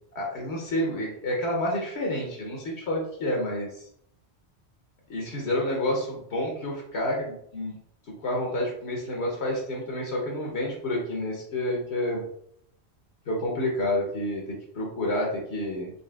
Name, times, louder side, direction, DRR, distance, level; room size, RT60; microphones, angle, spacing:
voice 1, 0.1-3.9 5.1-7.8 8.2-12.2 13.3-15.9, left 1 dB, 75° left, -1 dB, 1.1 m, -29 dB
4.1 x 3.3 x 2.3 m, 0.67 s
omnidirectional pair, 1.1 m